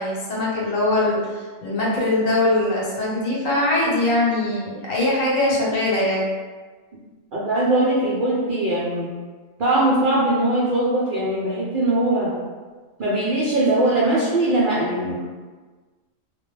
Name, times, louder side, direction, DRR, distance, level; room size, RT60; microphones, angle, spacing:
voice 1, 0.0-6.2, left 2 dB, 75° left, -5 dB, 1.1 m, -22 dB
voice 2, 7.3-9.1 9.6-12.3 13.0-15.2, right 1 dB, 60° right, -8 dB, 0.5 m, -21 dB
2.2 x 2.1 x 3.1 m, 1.4 s
omnidirectional pair, 1.4 m